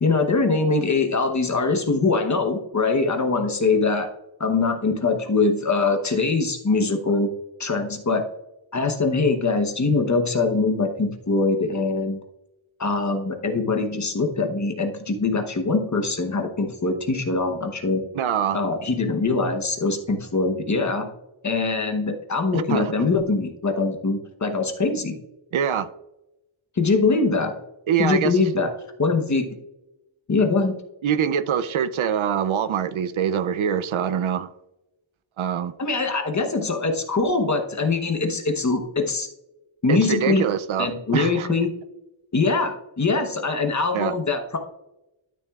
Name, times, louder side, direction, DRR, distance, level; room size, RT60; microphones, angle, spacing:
voice 1, 0.0-4.1 4.4-7.3 7.6-8.2 8.7-12.2 12.8-18.0 18.5-21.1 21.4-25.1 26.8-27.5 28.0-28.7 29.0-29.5 30.3-30.8 35.8-39.3 39.8-40.4 40.8-41.7 42.3-44.6, left 3 dB, 35° left, 1.0 m, -23 dB
voice 2, 18.1-18.6 22.5-22.9 25.5-25.9 27.9-28.4 31.0-34.5 35.4-35.7 39.9-41.5 43.9-44.1, right 8 dB, 70° right, 0.6 m, -24 dB
12.0 x 6.9 x 2.4 m
wide cardioid pair, 170°, 50 cm